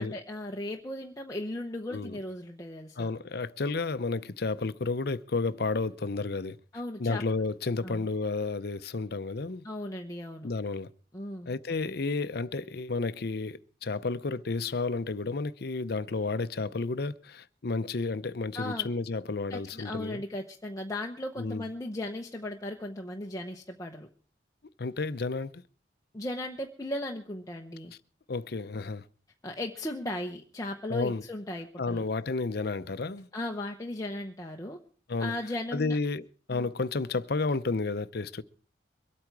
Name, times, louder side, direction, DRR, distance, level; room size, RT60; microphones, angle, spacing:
voice 1, 0.0-3.1 6.7-7.2 7.8-8.0 9.6-10.5 11.1-11.5 18.5-18.9 19.5-24.1 26.1-27.9 29.4-32.0 33.3-34.8 35.2-36.0, left 1 dB, 20° left, 0.9 m, -37 dB
voice 2, 3.0-6.6 7.0-9.6 10.4-10.9 11.5-20.2 21.4-21.7 24.8-25.6 28.3-29.0 30.9-31.2 31.8-33.3 35.1-35.3 35.7-38.4, left 3 dB, 55° left, 0.7 m, -31 dB
23.5 x 8.7 x 4.7 m
head